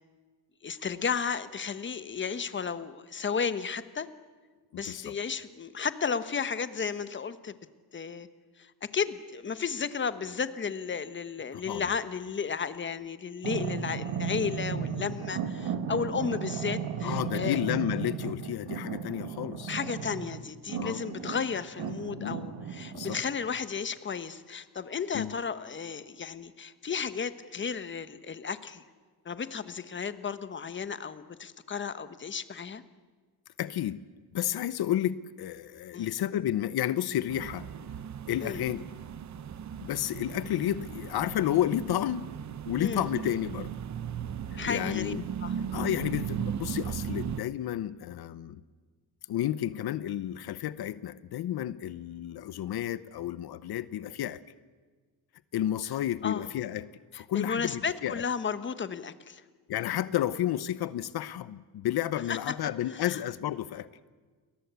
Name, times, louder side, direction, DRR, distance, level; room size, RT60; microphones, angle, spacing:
voice 1, 0.6-4.1 4.8-7.5 7.9-8.3 8.6-17.6 19.7-28.8 29.2-32.8 35.9-36.1 38.4-38.6 42.8-43.1 44.6-45.1 45.4-45.5 56.2-56.4 57.1-59.4 62.3-62.4 62.9-63.2, left 6 dB, 30° left, 12 dB, 1.2 m, -33 dB
voice 2, 4.7-5.2 11.5-11.9 17.0-19.7 20.8-21.0 22.2-22.4 22.9-23.2 25.1-25.3 33.6-34.0 34.3-37.7 38.3-38.9 39.8-42.3 42.6-43.7 44.5-45.3 45.7-48.6 49.3-54.4 55.5-56.9 57.1-58.2 59.7-63.9, left 12 dB, 75° left, 16 dB, 0.9 m, -31 dB
sound 1, 13.4-23.2, right 6 dB, 85° right, 2.0 m, -35 dB
sound 2, 37.3-47.4, right 8 dB, 45° right, 0.9 m, -37 dB
29.5 x 22.0 x 8.2 m, 1.4 s
wide cardioid pair, 165°, 39 cm